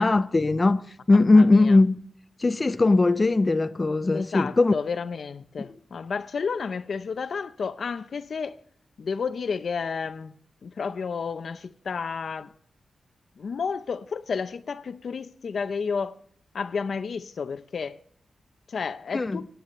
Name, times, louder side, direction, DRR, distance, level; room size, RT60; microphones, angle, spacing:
voice 1, 0.0-2.0 2.4-4.7 5.6-5.7 19.1-19.5, left 3 dB, 30° left, 0.5 m, -20 dB
voice 2, 1.1-1.8 4.1-8.5 9.0-10.3 10.6-12.5 13.4-16.1 16.5-18.0 18.7-19.4, left 5 dB, 70° left, 0.6 m, -31 dB
26.5 x 9.5 x 3.1 m
wide cardioid pair, 90°, 0 cm